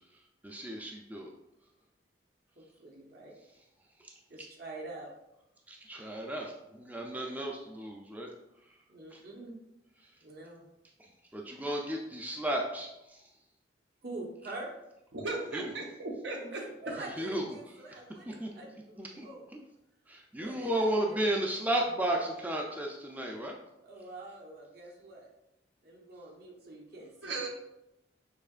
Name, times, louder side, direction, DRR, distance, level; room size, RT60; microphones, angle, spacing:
voice 1, 0.4-1.3 5.7-8.3 9.1-9.2 11.3-13.2 15.5-15.7 17.2-17.4 18.3-18.5 19.0-19.3 20.1-23.6, right 1 dB, 10° right, 0 dB, 0.4 m, -33 dB
voice 2, 2.6-3.4 4.3-5.1 7.1-7.4 8.9-9.5 10.2-10.6 14.0-14.7 16.4-19.5 20.4-21.3 23.8-25.3 25.8-27.5, right 2 dB, 60° right, -1 dB, 1.1 m, -46 dB
voice 3, 15.1-16.7 27.2-27.5, right 3 dB, 85° right, 0 dB, 0.9 m, -36 dB
6.5 x 2.9 x 2.4 m, 0.88 s
head